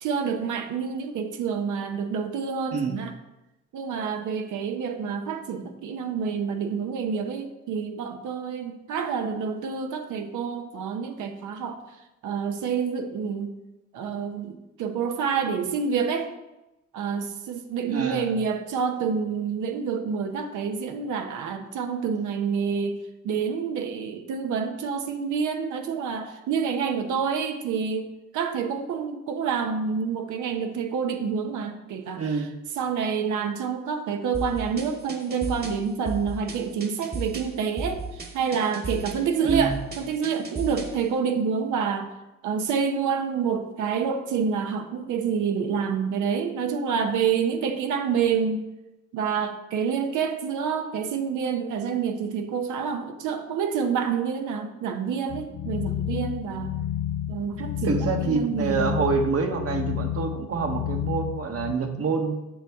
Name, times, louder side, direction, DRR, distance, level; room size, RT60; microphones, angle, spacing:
voice 1, 0.0-3.1 3.7-11.8 12.2-13.5 13.9-16.3 16.9-23.0 23.2-28.1 28.3-32.5 32.8-42.1 42.4-48.6 49.1-56.7 57.3-59.0, right 6 dB, 80° right, 5 dB, 0.8 m, -28 dB
voice 2, 17.9-18.3 32.2-32.5 39.4-39.8 57.8-62.3, right 5 dB, 50° right, 4 dB, 1.2 m, -26 dB
sound 1, 34.3-41.0, right 2 dB, 30° right, 1.3 m, -36 dB
sound 2, 55.3-61.7, left 11 dB, 55° left, 0.4 m, -31 dB
7.3 x 6.2 x 3.5 m, 0.98 s
cardioid pair, 90°, 30 cm